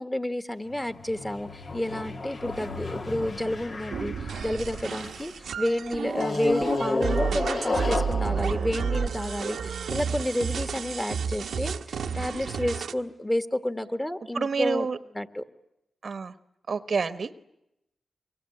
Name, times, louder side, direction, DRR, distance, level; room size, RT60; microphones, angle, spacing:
voice 1, 0.0-14.9 15.1-15.4, left 1 dB, 15° left, 9 dB, 1.7 m, -30 dB
sound 1, 0.7-5.3 6.1-9.7, left 3 dB, 65° left, 1.8 m, -32 dB
sound 2, 3.9-12.9, right 6 dB, 85° right, 1.0 m, -31 dB
voice 2, 14.3-15.0 16.0-16.3 16.7-17.4, right 5 dB, 65° right, 13 dB, 1.0 m, -28 dB
27.5 x 23.0 x 8.6 m, 0.87 s
cardioid pair, 50°, 0 cm